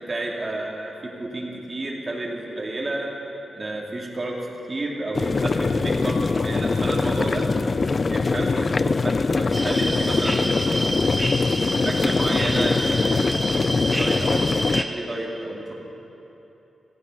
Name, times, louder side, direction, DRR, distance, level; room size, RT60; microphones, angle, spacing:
voice 1, 0.1-3.1 3.5-4.4 4.7-7.5 8.1-11.0 11.8-15.7, right 2 dB, 30° right, -2 dB, 2.5 m, -31 dB
sound 1, 5.1-14.8, left 4 dB, 35° left, 0.3 m, -22 dB
sound 2, 9.5-14.8, right 1 dB, 10° right, 1.1 m, -29 dB
17.5 x 14.5 x 5.7 m, 3.0 s
wide cardioid pair, 130°, 0 cm